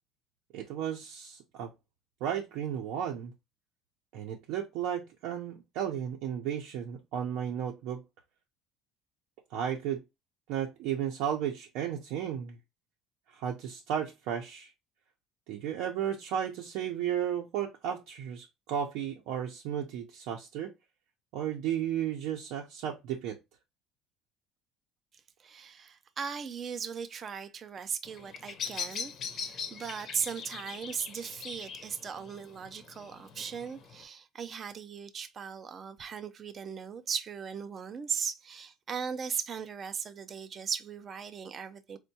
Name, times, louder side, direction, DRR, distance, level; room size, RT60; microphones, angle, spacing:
voice 1, 0.5-1.7 2.2-3.3 4.1-8.0 9.5-10.0 10.5-12.6 13.3-14.7 15.5-20.7 21.3-23.4, right 9 dB, 75° right, 0.5 m, -34 dB
voice 2, 25.4-42.0, right 6 dB, 30° right, 0.3 m, -38 dB
Bird vocalization bird call bird song, 28.0-34.0, left 6 dB, 40° left, 0.5 m, -41 dB
4.4 x 2.1 x 2.7 m
cardioid pair, 160°, 0 cm